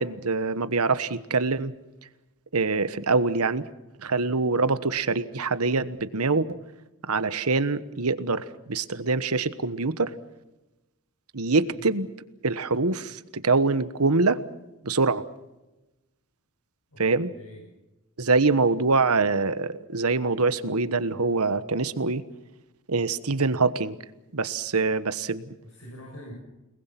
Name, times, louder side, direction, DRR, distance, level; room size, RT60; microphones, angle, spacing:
voice 1, 0.0-1.7 2.5-3.6 4.0-6.6 7.1-10.1 11.3-12.1 12.4-14.4 14.8-15.2 17.0-17.3 18.2-22.2 22.9-23.9 24.3-25.4, right 3 dB, 80° right, 13 dB, 1.3 m, -24 dB
voice 2, 25.6-26.3, equal, 75° left, -1 dB, 7.7 m, -44 dB
30.0 x 20.5 x 6.0 m, 1.0 s
head